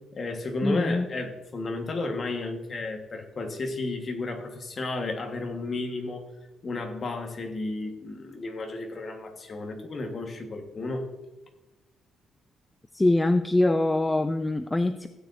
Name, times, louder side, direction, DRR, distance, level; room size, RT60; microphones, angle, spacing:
voice 1, 0.1-6.3 6.6-11.1, left 2 dB, 35° left, 4 dB, 1.4 m, -33 dB
voice 2, 0.6-1.1 12.9-15.1, left 2 dB, 10° left, 9 dB, 0.3 m, -23 dB
16.5 x 9.2 x 2.6 m, 1.1 s
cardioid pair, 155°, 0 cm